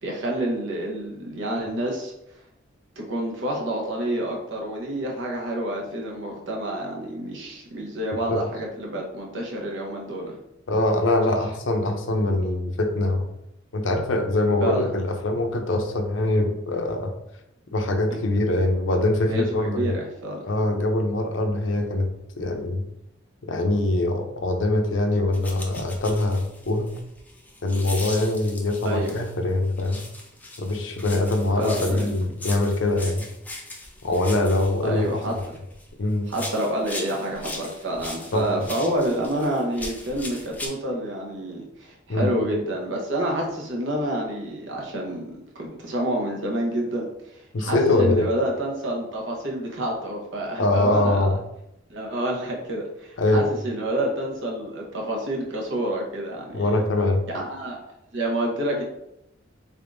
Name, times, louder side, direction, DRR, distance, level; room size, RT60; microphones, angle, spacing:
voice 1, 0.0-2.1 3.0-10.4 11.3-11.4 14.6-14.9 19.2-20.4 28.8-29.2 31.6-32.1 34.8-35.6 36.3-51.3 51.9-56.7 57.3-57.8 58.1-58.8, right 1 dB, 65° right, -1 dB, 0.9 m, -28 dB
voice 2, 10.7-13.3 13.7-17.1 17.7-19.9 20.5-22.9 23.5-26.9 27.6-30.0 30.6-33.3 34.0-35.1 36.0-36.3 38.3-38.5 42.1-42.3 47.5-48.3 50.6-51.4 53.2-53.5 56.5-57.3, left 2 dB, 70° left, 5 dB, 0.6 m, -23 dB
sound 1, 25.3-29.3 29.8-35.9 36.3-40.7, left 2 dB, 10° left, 0.5 m, -39 dB
3.7 x 3.5 x 2.6 m, 0.83 s
head